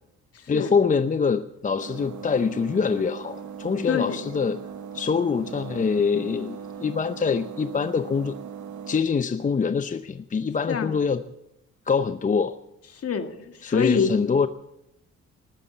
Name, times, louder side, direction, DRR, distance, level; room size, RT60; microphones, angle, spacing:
voice 1, 0.5-4.6 4.9-8.3 8.9-11.2 11.9-12.6 13.6-14.5, left 5 dB, 25° left, 11 dB, 0.6 m, -24 dB
sound 1, 1.8-9.0, right 7 dB, 75° right, 1.5 m, -39 dB
voice 2, 3.9-4.2 10.7-10.9 13.0-14.1, left 6 dB, 50° left, 7 dB, 1.9 m, -26 dB
20.0 x 8.5 x 8.3 m, 0.84 s
cardioid pair, 90°, 30 cm